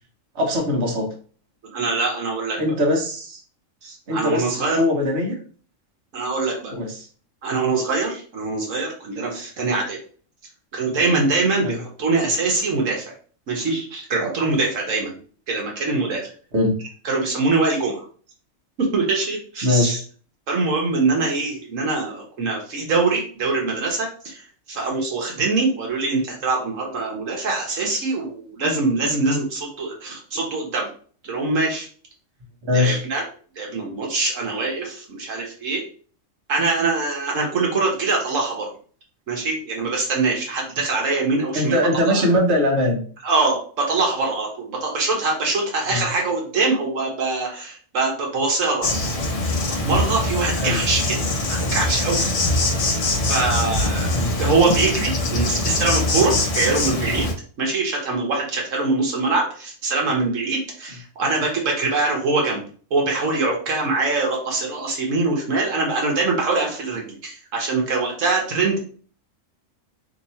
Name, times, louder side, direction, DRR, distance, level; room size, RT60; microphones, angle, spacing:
voice 1, 0.3-1.1 2.6-3.4 4.1-5.4 6.7-7.1 11.6-11.8 16.5-16.8 19.6-20.0 32.6-33.0 41.5-43.0 45.9-46.0 50.6-50.8 54.1-54.3, left 1 dB, 55° right, 0 dB, 1.2 m, -21 dB
voice 2, 1.7-2.6 3.8-4.8 6.1-6.7 7.4-10.0 10.7-13.1 13.5-15.2 15.5-16.2 17.0-18.0 18.8-20.0 20.5-24.4 24.7-30.9 31.2-31.9 32.7-33.2 33.6-35.8 36.5-38.7 39.3-41.8 42.1-42.3 43.2-48.9 49.7-51.2 51.5-52.3 53.3-57.3 57.6-62.6 62.9-68.8, right 3 dB, 75° right, 0 dB, 1.3 m, -23 dB
Insect, 48.8-57.3, left 2 dB, 50° left, 0.4 m, -23 dB
2.9 x 2.8 x 4.1 m, 0.43 s
omnidirectional pair, 1.4 m